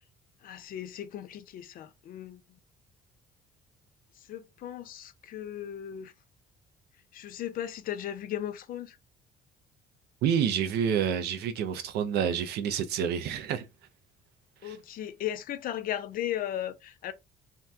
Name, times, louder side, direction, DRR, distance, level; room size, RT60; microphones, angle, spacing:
voice 1, 0.4-2.4 4.3-6.1 7.1-9.0 14.6-17.1, left 11 dB, 60° left, 0.5 m, -36 dB
voice 2, 10.2-13.7 14.6-14.8, right 8 dB, 75° right, 0.5 m, -28 dB
2.7 x 2.2 x 3.4 m
cardioid pair, 110°, 17 cm